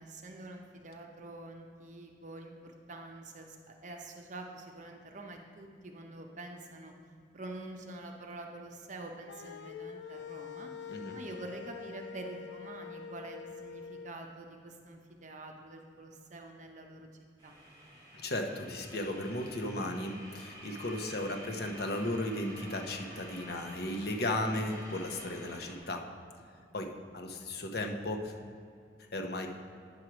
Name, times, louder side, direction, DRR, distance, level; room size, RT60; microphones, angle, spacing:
voice 1, 0.0-6.9 7.3-17.1 17.4-17.5, right 2 dB, 45° right, 3 dB, 0.7 m, -46 dB
sound 1, 9.3-14.1, left 7 dB, 85° left, 0.4 m, -45 dB
sound 2, 17.4-25.8, right 1 dB, 25° right, 2.0 m, -49 dB
voice 2, 18.1-26.0 26.7-28.3 29.1-29.5, left 1 dB, 60° left, 3 dB, 0.9 m, -35 dB
9.5 x 4.7 x 5.9 m, 2.4 s
head